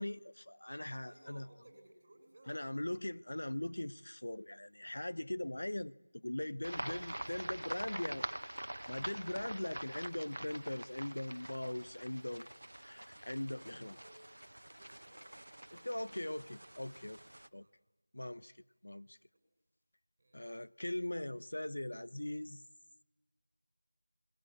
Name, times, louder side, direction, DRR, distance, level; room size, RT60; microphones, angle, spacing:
voice 1, 0.0-1.5 2.5-8.3 8.9-12.5 12.8-14.0 15.8-17.2 17.5-17.7 18.1-18.6 18.8-19.2 20.3-22.6, left 1 dB, 70° left, 0.7 m, -40 dB
voice 2, 1.1-2.8 6.6-8.1 13.5-14.2 14.6-16.1 17.6-17.7 20.2-20.5, right 1 dB, 35° right, 6.9 m, -62 dB
sound 1, 6.6-17.5, right 1 dB, 80° right, 1.0 m, -46 dB
21.0 x 20.0 x 9.7 m
figure-of-eight pair, 175°, 0 cm